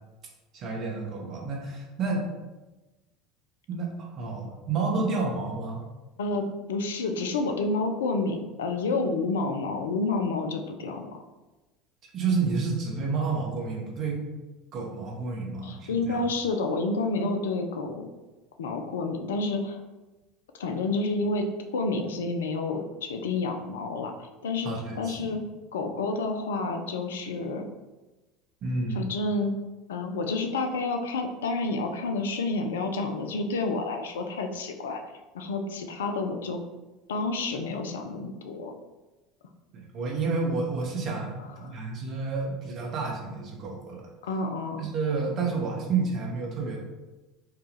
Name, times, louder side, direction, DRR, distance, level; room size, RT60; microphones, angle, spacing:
voice 1, 0.5-2.3 3.7-5.8 12.1-14.2 14.7-16.2 24.6-25.3 28.6-29.1 39.7-44.1 44.8-46.8, right 4 dB, 50° right, -1 dB, 1.0 m, -30 dB
voice 2, 6.2-11.2 15.6-18.1 18.6-19.8 20.5-21.5 21.7-25.4 25.7-27.7 28.9-29.5 29.9-35.0 35.3-36.6 37.1-38.7 41.6-41.8 44.2-44.9, left 3 dB, 80° left, 5 dB, 0.4 m, -29 dB
4.7 x 2.3 x 3.1 m, 1.1 s
hypercardioid pair, 75°, 0 cm